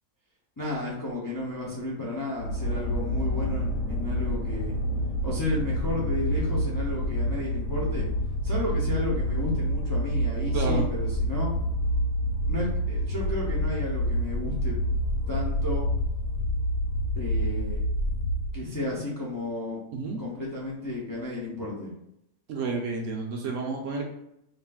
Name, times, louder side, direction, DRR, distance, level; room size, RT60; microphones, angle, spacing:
voice 1, 0.6-4.8 5.2-8.1 8.4-11.6 12.5-14.8 15.3-15.9 17.2-17.8 18.5-19.8 20.2-21.9, left 2 dB, 20° left, -4 dB, 0.5 m, -32 dB
sound 1, 2.4-18.6, equal, 60° left, 1.2 m, -28 dB
voice 2, 10.5-10.9 19.9-20.2 22.5-24.0, right 3 dB, 65° right, 1 dB, 0.9 m, -30 dB
5.1 x 2.6 x 2.3 m, 0.79 s
omnidirectional pair, 1.6 m